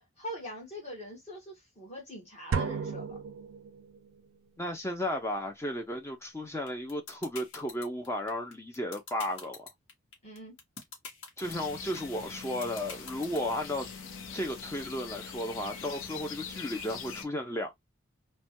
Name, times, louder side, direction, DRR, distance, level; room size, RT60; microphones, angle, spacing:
voice 1, 0.0-3.2 10.2-10.6, equal, 30° left, 1.3 m, -43 dB
sound 1, 2.5-4.2, right 5 dB, 75° right, 0.4 m, -34 dB
voice 2, 4.6-9.7 11.4-13.9 14.3-17.8, left 1 dB, 15° left, 0.4 m, -34 dB
sound 2, 6.7-13.7, left 5 dB, 65° left, 1.2 m, -44 dB
sound 3, 11.4-17.2, left 6 dB, 85° left, 0.7 m, -43 dB
3.2 x 2.1 x 2.9 m
head